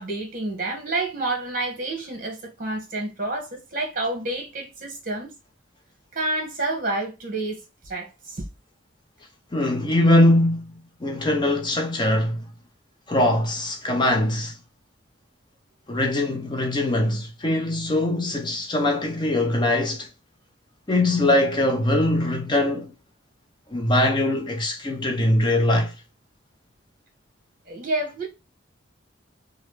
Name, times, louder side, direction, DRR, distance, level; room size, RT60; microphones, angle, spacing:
voice 1, 0.0-5.3 6.1-8.5 27.7-28.3, right 2 dB, 45° right, 1.0 m, -29 dB
voice 2, 9.5-12.4 13.1-14.5 15.9-20.1 20.9-22.9 23.7-25.9, left 1 dB, 25° left, 0.5 m, -22 dB
3.0 x 2.4 x 3.2 m
head